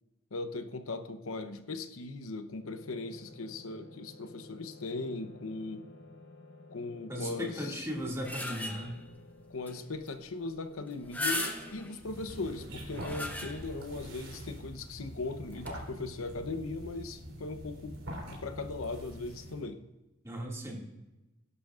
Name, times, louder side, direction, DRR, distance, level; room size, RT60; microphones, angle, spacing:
voice 1, 0.3-5.9 6.7-7.9 9.5-18.0 18.3-19.8, left 3 dB, 90° left, 9 dB, 0.9 m, -39 dB
sound 1, 2.6-12.3, left 2 dB, 60° left, 0.9 m, -54 dB
voice 2, 7.1-9.0 20.2-20.9, equal, 15° right, -2 dB, 2.2 m, -37 dB
sound 2, 7.9-9.0 9.7-9.8 10.1-10.2 10.9-12.0 12.7-13.9 14.3-14.4 15.5-15.7, left 1 dB, 10° left, 1.1 m, -37 dB
sound 3, 12.0-19.7, equal, 85° right, 3.3 m, -44 dB
17.0 x 11.0 x 2.5 m, 1.0 s
head